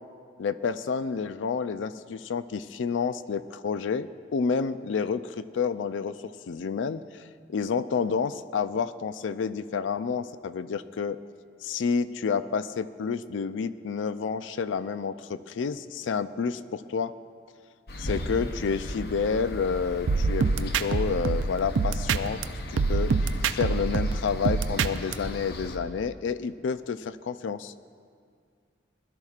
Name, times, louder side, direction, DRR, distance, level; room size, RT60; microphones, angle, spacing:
voice 1, 0.4-7.2 7.5-11.2 11.6-17.1 18.0-22.4 22.7-23.1 23.5-27.7, left 5 dB, 85° left, 14 dB, 0.4 m, -29 dB
sound 1, 17.9-25.8, left 1 dB, 55° left, 0.7 m, -37 dB
sound 2, 20.1-22.4 22.8-25.1, right 4 dB, 90° right, 0.4 m, -25 dB
20.5 x 12.0 x 2.4 m, 2.3 s
head